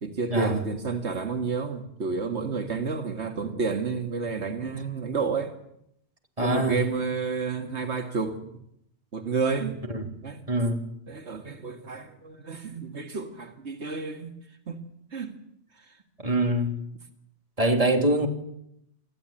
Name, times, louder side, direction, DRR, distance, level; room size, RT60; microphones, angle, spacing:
voice 1, 0.0-5.5 6.4-8.5 9.1-9.8 10.2-10.4 11.1-14.3 14.7-14.8 15.1-15.3 15.8-16.0, right 4 dB, 85° right, 2.3 m, -30 dB
voice 2, 6.4-6.8 9.9-10.1 10.5-10.9 16.2-16.8 17.6-18.3, right 1 dB, 30° right, 3.5 m, -24 dB
28.0 x 15.0 x 9.1 m
omnidirectional pair, 1.1 m